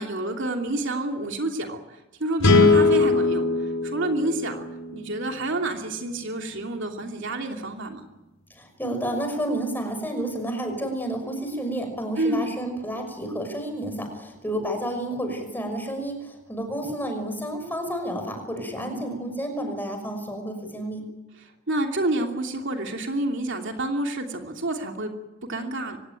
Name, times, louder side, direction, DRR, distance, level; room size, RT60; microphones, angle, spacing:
voice 1, 0.0-1.8 2.2-3.4 3.8-4.6 4.9-8.0 12.2-12.5 18.8-19.4 21.7-25.1 25.5-26.0, right 1 dB, 60° right, 3 dB, 2.9 m, -28 dB
sound 1, 2.4-5.7, left 3 dB, 80° left, 4.9 m, -21 dB
voice 2, 8.5-21.1, right 1 dB, 10° left, 5 dB, 5.9 m, -30 dB
25.0 x 18.5 x 9.2 m, 1.0 s
head